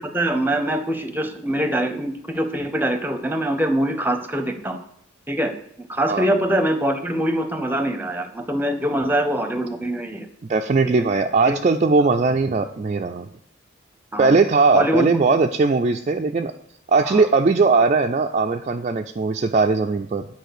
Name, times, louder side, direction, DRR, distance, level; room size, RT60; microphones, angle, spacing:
voice 1, 0.0-4.8 5.3-5.5 5.8-10.3 10.8-11.0 11.4-11.5 14.1-14.3 14.7-15.0 17.0-17.3, right 1 dB, 10° right, 8 dB, 0.7 m, -23 dB
voice 2, 10.5-13.3 14.2-16.5 16.9-20.3, right 4 dB, 35° right, 4 dB, 0.3 m, -19 dB
9.1 x 4.9 x 6.6 m, 0.69 s
head